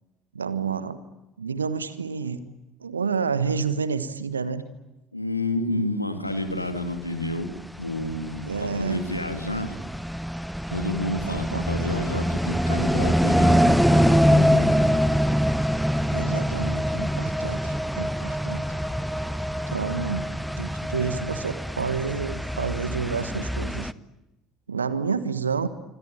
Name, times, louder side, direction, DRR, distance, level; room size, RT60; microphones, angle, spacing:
voice 1, 0.3-1.0 1.4-2.4 2.8-4.6 8.5-9.0 11.2-11.9 16.1-18.6 19.7-23.9 24.7-25.7, right 5 dB, 80° right, 14 dB, 1.3 m, -29 dB
voice 2, 5.1-7.5 7.8-9.8 10.7-15.0, left 1 dB, 90° left, 7 dB, 2.3 m, -30 dB
sound 1, 7.3-23.9, equal, ahead, 0.9 m, -24 dB
26.5 x 25.5 x 8.8 m, 0.98 s
figure-of-eight pair, 60°, 0 cm